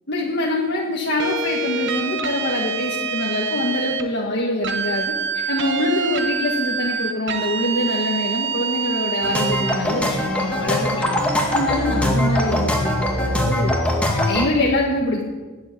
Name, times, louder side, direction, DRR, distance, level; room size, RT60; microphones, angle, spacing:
voice 1, 0.1-13.8 14.1-15.2, left 1 dB, 55° left, -2 dB, 1.7 m, -24 dB
sound 1, 1.2-4.1 4.6-9.8, right 5 dB, 55° right, 1.3 m, -26 dB
sound 2, 9.2-14.5, left 1 dB, 5° left, 2.1 m, -21 dB
19.5 x 7.9 x 8.4 m, 1.4 s
head